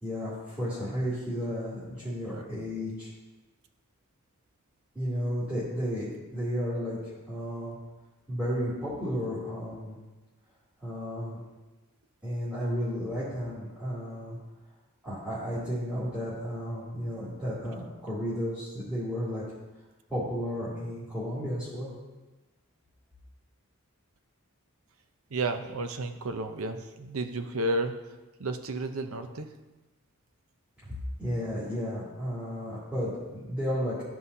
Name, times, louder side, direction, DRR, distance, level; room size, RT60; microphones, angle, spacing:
voice 1, 0.0-3.1 4.9-6.0 6.3-7.7 8.3-10.0 10.8-11.4 12.2-14.4 15.0-19.4 20.1-21.9 30.8-30.9 31.2-34.0, equal, 5° right, -13 dB, 2.6 m, -33 dB
voice 2, 25.3-27.9 28.4-29.5, right 2 dB, 70° right, 7 dB, 0.7 m, -32 dB
14.0 x 5.6 x 2.8 m, 1.1 s
head